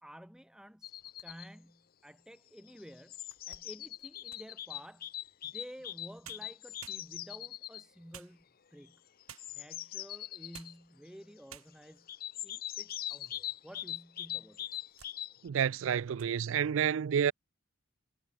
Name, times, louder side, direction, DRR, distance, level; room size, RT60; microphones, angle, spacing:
voice 1, 0.0-0.9 1.2-3.2 3.5-5.1 5.4-8.5 8.7-9.0 9.5-12.1 12.4-14.7, equal, 5° right, 1.9 m, -52 dB
sound 1, 0.8-1.5 2.6-7.8 9.2-10.7 12.1-15.5, left 12 dB, 40° left, 0.6 m, -42 dB
sound 2, 0.9-1.7 2.3-2.4 2.9-4.6 5.9-6.0 6.2-7.5 8.1-8.8 9.3-9.7 10.3-10.9 11.2-11.3 11.5-12.1 12.6-13.4 13.7-13.8 14.5-15.2 15.5-15.8 16.1-16.4, right 9 dB, 85° right, 6.8 m, -55 dB
voice 2, 15.4-17.3, right 8 dB, 65° right, 0.4 m, -29 dB
head